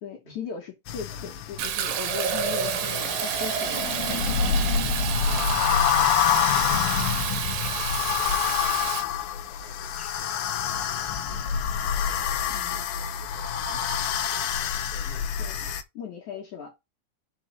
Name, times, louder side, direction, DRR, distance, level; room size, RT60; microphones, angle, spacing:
voice 1, 0.0-4.4 12.5-12.9 15.4-15.6 16.0-16.8, left 7 dB, 60° left, 2.5 m, -38 dB
sound 1, 0.9-15.8, left 8 dB, 75° left, 2.6 m, -27 dB
Fill (with liquid), 1.6-9.0, right 8 dB, 75° right, 2.6 m, -29 dB
voice 2, 5.2-15.7, right 2 dB, 15° right, 3.3 m, -51 dB
5.5 x 4.7 x 6.1 m
omnidirectional pair, 4.5 m